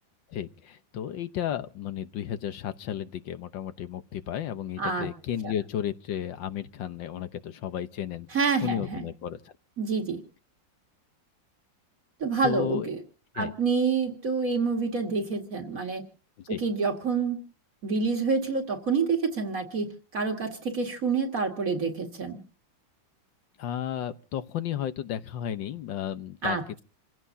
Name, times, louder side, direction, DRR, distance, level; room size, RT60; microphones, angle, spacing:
voice 1, 0.3-8.3 8.6-9.5 12.4-12.9 13.4-13.5 16.4-16.6 23.6-26.8, left 10 dB, 85° left, 1.7 m, -33 dB
voice 2, 4.8-5.1 5.4-5.5 8.3-9.0 9.8-10.2 12.2-13.0 13.3-16.0 16.5-17.4 17.8-22.4 26.4-26.6, right 4 dB, 50° right, 2.4 m, -27 dB
28.0 x 16.0 x 2.7 m
omnidirectional pair, 2.0 m